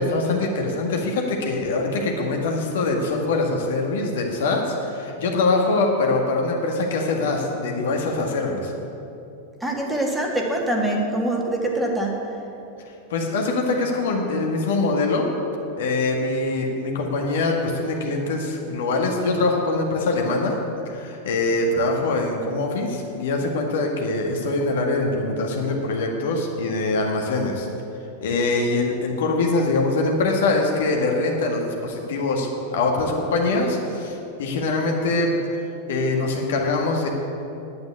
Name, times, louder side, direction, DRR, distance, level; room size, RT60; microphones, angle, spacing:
voice 1, 0.0-8.7 13.1-15.3 15.8-20.6 20.9-27.7 28.2-35.3 35.9-37.1, left 2 dB, 60° left, 1 dB, 1.8 m, -23 dB
voice 2, 9.6-12.3, right 1 dB, 5° right, -1 dB, 2.0 m, -24 dB
9.6 x 9.4 x 8.4 m, 2.7 s
figure-of-eight pair, 90°, 0 cm